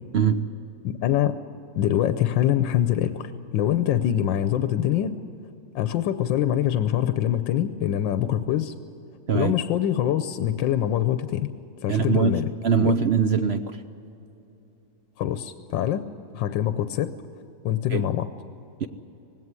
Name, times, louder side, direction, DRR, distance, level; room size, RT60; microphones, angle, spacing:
voice 1, 0.8-1.3 1.8-5.1 5.7-8.7 9.3-11.5 11.8-12.5 12.8-12.9 15.2-16.0 16.3-17.1 17.6-18.3, left 11 dB, 85° left, 10 dB, 1.4 m, -24 dB
voice 2, 11.9-13.6 17.9-18.0 18.8-18.9, right 6 dB, 65° right, 9 dB, 0.6 m, -22 dB
19.5 x 17.0 x 9.6 m, 2.9 s
omnidirectional pair, 2.0 m